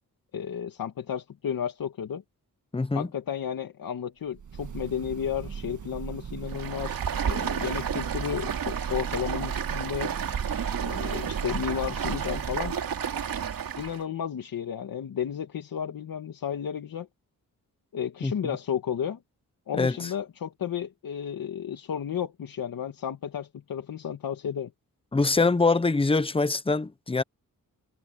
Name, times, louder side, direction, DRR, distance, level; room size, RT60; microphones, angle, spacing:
voice 1, 0.3-2.2 3.0-10.1 10.8-12.8 13.8-17.1 17.9-19.2 19.7-24.7, left 8 dB, 75° left, 2.0 m, -33 dB
voice 2, 2.7-3.1 18.2-18.3 19.7-20.1 25.1-27.2, left 3 dB, 15° left, 0.9 m, -24 dB
Breathing / Bird, 4.3-12.9, right 7 dB, 60° right, 1.6 m, -38 dB
Stream, 6.5-14.0, right 8 dB, 75° right, 2.6 m, -31 dB
wide cardioid pair, 130°, 34 cm